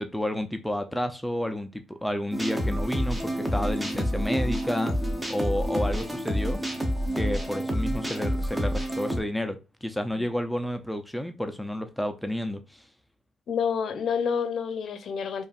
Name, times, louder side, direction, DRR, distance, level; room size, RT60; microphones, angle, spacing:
voice 1, 0.0-6.6 7.1-12.8, equal, 5° left, 0.5 m, -31 dB
sound 1, 2.3-9.2, equal, 15° right, 0.9 m, -28 dB
voice 2, 13.5-15.5, left 6 dB, 65° left, 0.6 m, -28 dB
5.0 x 2.5 x 2.4 m
supercardioid pair, 60°, 0 cm